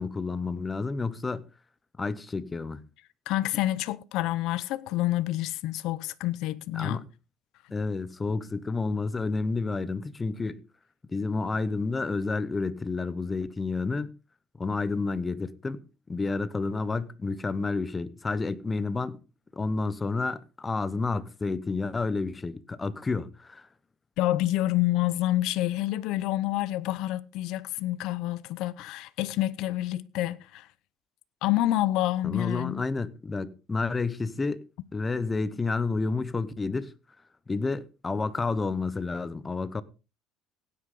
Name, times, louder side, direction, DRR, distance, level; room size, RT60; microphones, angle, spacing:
voice 1, 0.0-1.5 2.0-2.8 6.7-7.0 7.7-10.6 11.1-14.1 14.6-19.2 19.6-23.7 32.2-34.6 34.9-36.9 37.5-39.8, left 3 dB, 15° left, 0.9 m, -30 dB
voice 2, 3.3-7.0 24.2-30.7 31.4-32.8, left 15 dB, 65° left, 0.8 m, -28 dB
16.5 x 9.8 x 3.8 m
cardioid pair, 145°, 0 cm